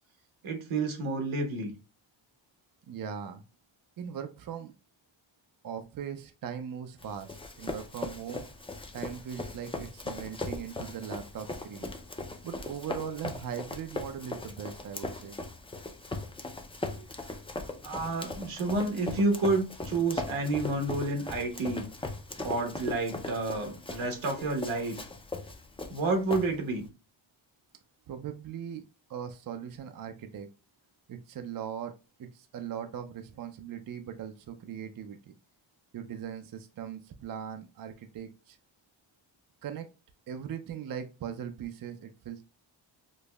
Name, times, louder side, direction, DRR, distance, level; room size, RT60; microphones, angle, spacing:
voice 1, 0.4-1.7 17.8-21.9 22.4-25.0 25.9-26.9, right 3 dB, 75° right, 3 dB, 1.1 m, -30 dB
voice 2, 2.9-3.4 4.0-4.7 5.6-8.5 8.9-11.9 12.4-15.4 28.1-28.8 29.1-30.5 31.1-31.9 32.2-35.2 35.9-38.6 39.6-39.9 40.3-42.4, right 8 dB, 45° right, 7 dB, 0.4 m, -39 dB
Run, 7.0-26.9, left 2 dB, 10° left, 0.4 m, -39 dB
5.2 x 2.0 x 2.2 m, 0.31 s
cardioid pair, 95°, 48 cm